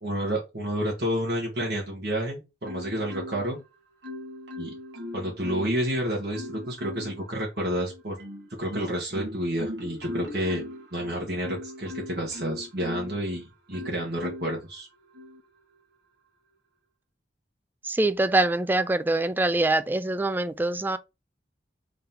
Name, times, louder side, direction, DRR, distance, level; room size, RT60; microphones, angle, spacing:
voice 1, 0.0-3.6 4.6-4.7 5.1-8.2 8.5-10.6 10.9-14.9, equal, 60° right, 1.3 m, -30 dB
Marimba xylophone, 2.6-3.6 4.0-5.9 6.3-7.2 7.8-13.2 13.7-14.6 15.1-15.4, left 1 dB, 75° right, 1.1 m, -39 dB
voice 2, 17.9-21.0, right 2 dB, 10° right, 0.3 m, -24 dB
3.7 x 2.8 x 3.6 m
head